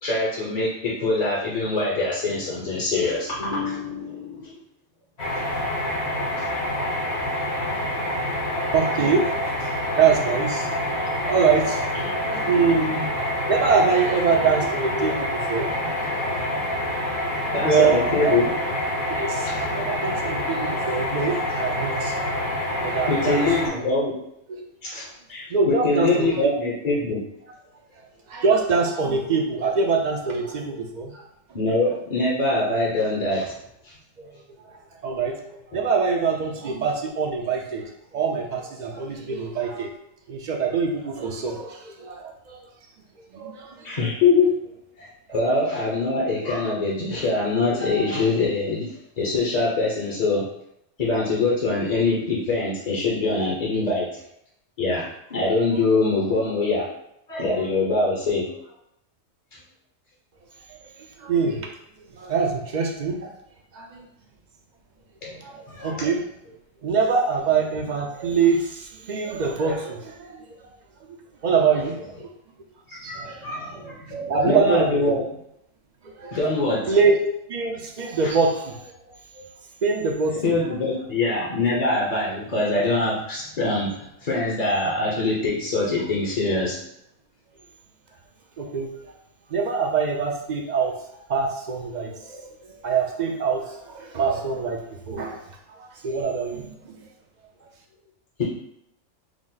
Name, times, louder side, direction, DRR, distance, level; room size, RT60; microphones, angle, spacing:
voice 1, 0.0-4.5 6.4-6.5 12.5-12.7 17.5-18.5 19.4-19.5 23.1-24.1 24.8-27.2 31.5-33.5 33.8-33.9 35.7-35.8 43.8-44.5 45.0-48.9 49.2-50.4 51.0-54.1 54.8-56.9 57.3-58.5 65.2-66.0 72.9-75.2 76.3-77.0 78.2-78.3 80.4-86.8 98.4-98.5, left 3 dB, 40° left, -5 dB, 0.8 m, -24 dB
sound 1, 5.2-23.7, left 1 dB, 55° left, 1.3 m, -27 dB
voice 2, 8.7-16.2 16.5-18.5 19.1-22.3 22.8-23.4 23.7-23.9 24.5-24.6 25.5-26.3 28.0-31.2 34.2-34.3 34.7-39.9 40.3-42.6 43.3-43.9 60.7-61.7 62.0-63.3 63.7-64.1 65.4-66.2 66.8-70.5 71.1-72.3 72.9-73.5 74.3-75.2 76.0-76.4 76.9-77.2 77.5-78.9 79.3-79.4 79.8-80.4 88.6-88.9 89.5-95.4 95.8-97.0, right 5 dB, 50° right, 1 dB, 0.5 m, -25 dB
4.8 x 2.0 x 3.9 m, 0.77 s
omnidirectional pair, 1.3 m